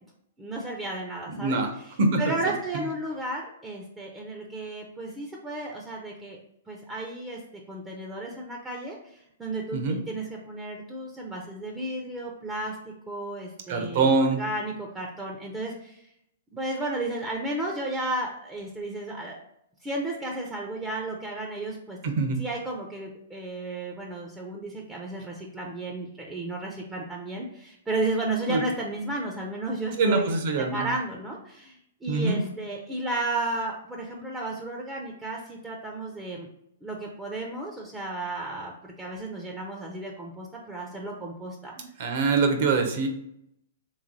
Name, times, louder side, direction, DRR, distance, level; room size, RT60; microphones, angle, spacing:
voice 1, 0.4-6.4 6.7-7.4 7.7-12.8 13.1-16.1 16.5-19.4 19.8-22.0 22.4-30.3 30.7-36.5 36.8-41.7, right 2 dB, 10° right, -1 dB, 0.6 m, -33 dB
voice 2, 1.3-1.7 2.0-2.2 9.7-10.0 13.7-14.4 22.0-22.4 28.5-28.6 30.0-30.9 32.1-32.4 41.8-43.1, right 3 dB, 55° right, 5 dB, 0.9 m, -24 dB
3.5 x 3.1 x 3.9 m, 0.76 s
hypercardioid pair, 125°, 0 cm